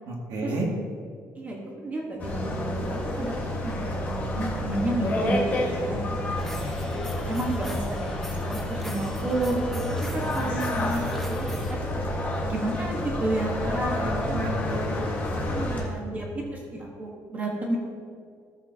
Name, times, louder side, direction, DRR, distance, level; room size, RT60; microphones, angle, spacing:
voice 1, 0.1-0.7 13.6-16.3, right 1 dB, 70° right, -1 dB, 2.0 m, -33 dB
voice 2, 1.4-6.4 7.3-11.8 12.5-14.4 15.5-17.8, right 2 dB, 25° right, -1 dB, 1.2 m, -31 dB
sound 1, 2.2-15.8, left 1 dB, 25° left, 1.5 m, -29 dB
sound 2, 6.4-11.7, equal, 5° left, 0.7 m, -37 dB
14.0 x 8.0 x 2.8 m, 2.1 s
cardioid pair, 175°, 6 cm